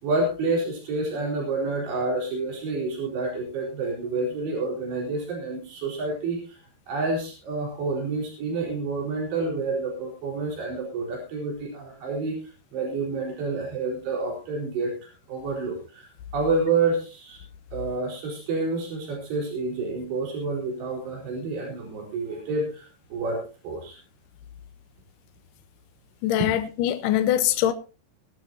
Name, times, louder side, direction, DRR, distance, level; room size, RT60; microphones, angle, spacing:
voice 1, 0.0-6.6 6.9-12.4 12.7-14.9 15.3-17.4 17.7-24.0, right 3 dB, 90° right, 6.6 m, -28 dB
voice 2, 26.2-27.7, left 12 dB, 80° left, 2.0 m, -23 dB
20.5 x 12.5 x 2.8 m
omnidirectional pair, 4.7 m